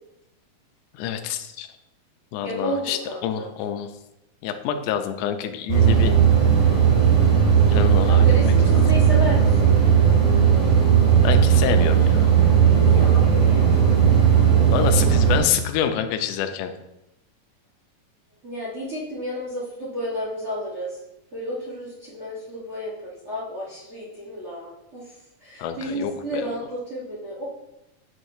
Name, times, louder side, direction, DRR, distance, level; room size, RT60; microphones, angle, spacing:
voice 1, 0.9-1.7 2.3-3.9 4.4-6.2 7.7-8.5 11.2-12.3 14.7-16.7 25.6-26.5, left 9 dB, 85° left, 6 dB, 2.1 m, -27 dB
voice 2, 2.4-3.5 8.1-9.8 12.7-13.7 18.4-21.0 21.3-25.0 25.4-27.4, equal, 80° right, -8 dB, 0.6 m, -32 dB
sound 1, 5.7-15.4, right 8 dB, 55° right, 3.4 m, -16 dB
7.8 x 6.5 x 2.7 m, 0.89 s
omnidirectional pair, 3.7 m